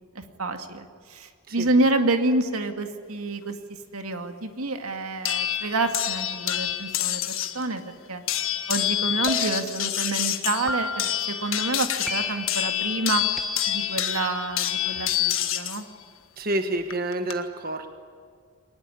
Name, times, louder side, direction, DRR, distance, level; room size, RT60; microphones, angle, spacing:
voice 1, 0.1-3.6 3.9-7.8 8.1-8.2 8.7-13.2 13.7-15.9, right 2 dB, 80° right, 6 dB, 2.1 m, -28 dB
voice 2, 1.5-1.9 16.4-17.9, right 1 dB, 40° right, 7 dB, 1.3 m, -29 dB
sound 1, 5.3-7.6 8.3-15.8 16.9-17.3, left 12 dB, 70° left, 1.5 m, -27 dB
sound 2, 9.3-9.9 10.7-11.3 12.1-12.6 13.4-13.9, right 1 dB, ahead, 1.1 m, -34 dB
23.0 x 20.0 x 9.9 m, 2.1 s
head